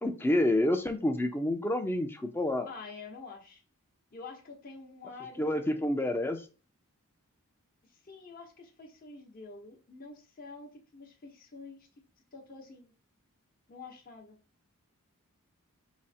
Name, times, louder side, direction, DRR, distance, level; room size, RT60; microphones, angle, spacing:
voice 1, 0.0-2.7 5.4-6.4, left 1 dB, 10° left, 7 dB, 0.4 m, -28 dB
voice 2, 2.7-3.6 4.1-5.9 7.8-11.9 12.3-12.9 13.7-14.4, left 4 dB, 40° left, 0 dB, 0.8 m, -47 dB
4.9 x 2.1 x 4.2 m, 0.35 s
head